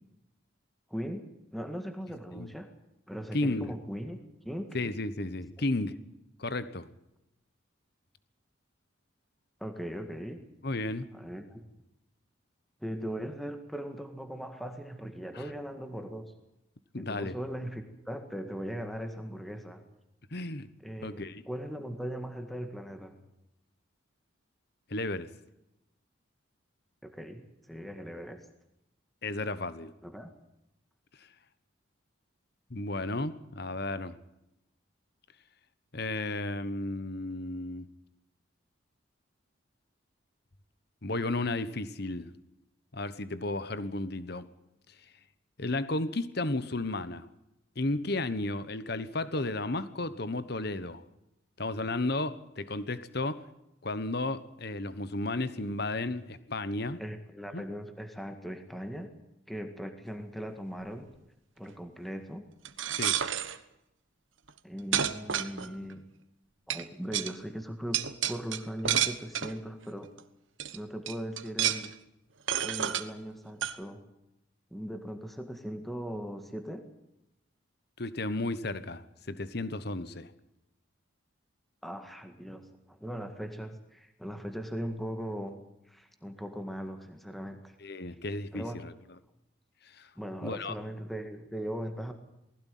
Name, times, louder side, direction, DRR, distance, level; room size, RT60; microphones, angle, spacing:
voice 1, 0.9-1.3 1.5-2.7 3.1-4.8 9.6-10.4 11.1-11.7 12.8-16.3 17.0-19.8 20.8-23.2 27.0-28.5 30.0-30.3 57.0-59.1 59.5-61.1 61.6-62.5 64.6-66.1 66.7-68.0 68.3-70.1 70.7-71.9 72.6-74.0 74.7-76.9 81.8-87.8 88.5-88.8 90.2-92.1, equal, ahead, 6 dB, 1.9 m, -39 dB
voice 2, 3.3-3.7 4.7-5.9 6.4-6.9 10.6-11.1 15.3-15.4 16.9-17.4 20.3-20.7 21.0-21.4 24.9-25.3 29.2-29.9 32.7-34.2 35.9-37.9 41.0-42.3 42.9-44.5 45.6-47.3 47.8-51.0 51.6-53.4 53.8-57.0 57.5-57.6 63.0-63.2 78.0-80.3 87.8-88.9 89.8-90.1 90.4-90.7, left 2 dB, 50° left, 14 dB, 1.2 m, -33 dB
sound 1, 62.6-63.6 64.5-64.6 64.9-65.9 66.7-66.8 67.1-67.3 67.9-69.6 70.2-70.3 70.6-70.8 71.1-71.9 72.5-73.1 73.6-73.8, right 9 dB, 75° right, 1.3 m, -30 dB
20.0 x 16.0 x 9.3 m, 0.88 s
head